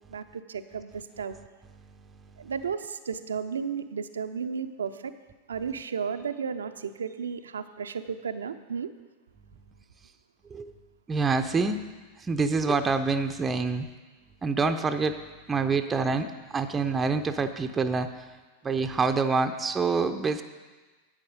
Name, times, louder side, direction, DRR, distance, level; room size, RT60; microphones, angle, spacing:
voice 1, 0.1-1.4 2.4-5.1 5.5-8.9, right 6 dB, 70° right, 9 dB, 0.5 m, -33 dB
voice 2, 11.1-11.8 12.3-13.9 14.4-15.2 15.5-16.3 16.5-18.1 18.6-20.4, right 4 dB, 15° right, 7 dB, 0.6 m, -26 dB
10.5 x 9.0 x 5.3 m, 1.3 s
figure-of-eight pair, 90°, 0 cm